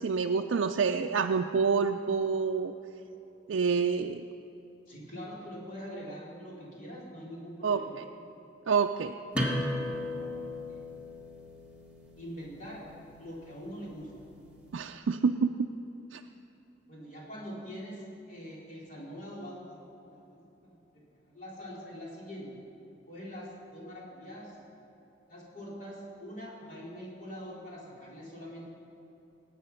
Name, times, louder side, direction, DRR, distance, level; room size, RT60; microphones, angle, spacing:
voice 1, 0.0-2.7 3.5-4.2 7.6-8.0 8.7-9.1 14.7-15.5 16.1-16.2, right 5 dB, 80° right, 4 dB, 0.4 m, -27 dB
voice 2, 4.9-7.9 9.6-10.3 10.7-10.8 12.2-12.8 13.2-14.1 16.9-18.0 18.3-19.8 20.1-22.5 23.1-24.6 25.3-28.7, equal, 45° left, -6 dB, 3.6 m, -44 dB
sound 1, 9.3-14.7, left 1 dB, 5° right, 1.5 m, -37 dB
19.0 x 8.4 x 5.7 m, 3.0 s
head